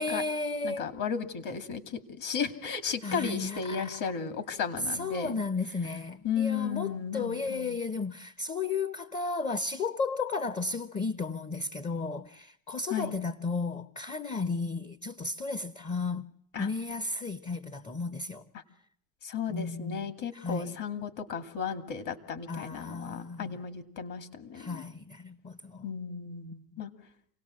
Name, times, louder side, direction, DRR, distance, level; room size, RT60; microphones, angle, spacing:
voice 1, 0.0-0.9 3.0-3.9 4.9-16.3 16.6-18.4 19.5-20.0 20.3-20.8 22.5-23.6 24.5-25.8, left 4 dB, 15° left, 0.8 m, -34 dB
voice 2, 0.6-5.4 6.2-7.8 12.9-13.1 16.5-16.7 18.5-18.6 19.2-24.8 25.8-26.9, left 6 dB, 45° left, 2.5 m, -34 dB
28.0 x 18.0 x 7.6 m
supercardioid pair, 115°, 43 cm